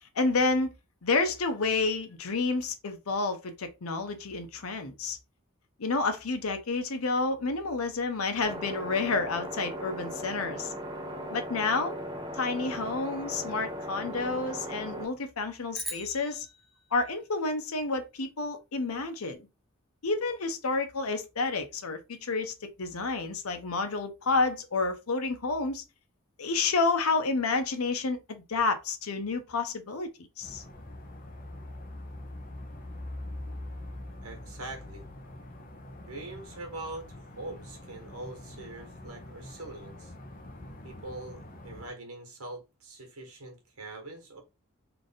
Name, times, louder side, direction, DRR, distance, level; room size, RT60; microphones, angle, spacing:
voice 1, 0.2-0.7 1.0-5.2 5.8-10.7 11.3-11.9 12.3-16.5 16.9-19.4 20.0-25.8 26.4-30.1 30.4-30.6, left 3 dB, 80° left, 0.7 m, -29 dB
sound 1, 8.4-15.1, equal, 20° right, 1.1 m, -38 dB
sound 2, 15.7-18.2, right 1 dB, ahead, 0.5 m, -43 dB
sound 3, 30.4-41.9, left 1 dB, 40° left, 0.7 m, -44 dB
voice 2, 34.2-35.0 36.1-40.1 40.8-44.4, right 2 dB, 85° right, 1.4 m, -43 dB
3.3 x 2.5 x 4.0 m
head